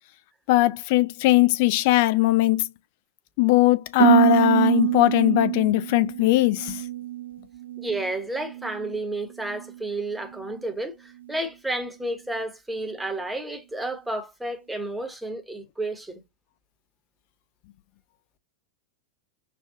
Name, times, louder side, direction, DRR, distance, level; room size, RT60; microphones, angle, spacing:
voice 1, 0.5-2.7 3.4-6.8, left 17 dB, 50° left, 0.4 m, -20 dB
Harp, 4.0-8.1 8.4-8.9 9.5-9.8, right 14 dB, 65° right, 0.4 m, -24 dB
voice 2, 7.8-16.2, right 2 dB, 5° right, 0.8 m, -31 dB
5.1 x 2.3 x 2.6 m
figure-of-eight pair, 90°, 0 cm